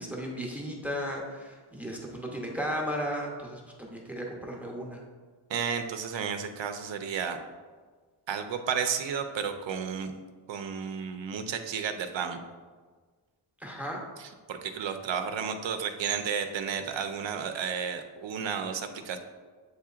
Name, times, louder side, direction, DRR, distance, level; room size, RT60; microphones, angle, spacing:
voice 1, 0.0-5.0 13.6-14.0, equal, 5° right, -1 dB, 0.7 m, -35 dB
voice 2, 5.5-7.4 8.3-10.1 10.5-12.4 14.2-19.2, right 7 dB, 65° right, 7 dB, 0.5 m, -32 dB
7.9 x 2.8 x 2.4 m, 1.4 s
wide cardioid pair, 110°, 50 cm